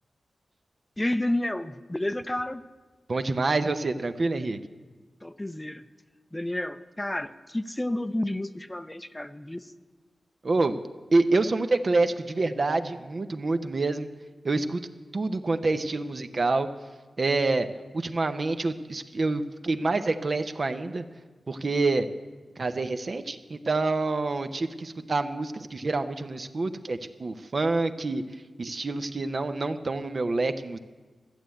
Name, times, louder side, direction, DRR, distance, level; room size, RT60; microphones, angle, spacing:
voice 1, 1.0-2.6 5.2-5.8 6.3-9.7, left 1 dB, 15° left, 12 dB, 0.6 m, -30 dB
voice 2, 3.1-4.6 10.4-10.8 11.1-14.1 14.4-14.8 15.1-16.7 17.2-17.7 17.9-21.0 21.5-22.1 22.6-28.2 28.6-30.8, right 3 dB, 55° right, 9 dB, 0.7 m, -27 dB
13.5 x 7.7 x 8.4 m, 1.3 s
cardioid pair, 55°, 0 cm